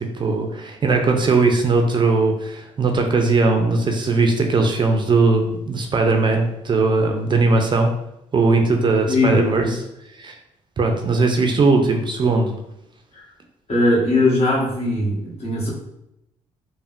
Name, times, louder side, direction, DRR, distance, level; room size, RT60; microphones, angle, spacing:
voice 1, 0.0-7.9 8.3-9.8 10.1-10.4 10.8-12.5, right 3 dB, 35° right, 3 dB, 0.4 m, -19 dB
voice 2, 9.1-9.7 13.1-13.2 13.7-15.7, left 2 dB, 50° left, -5 dB, 1.3 m, -20 dB
3.4 x 2.1 x 2.5 m, 0.85 s
supercardioid pair, 60°, 14 cm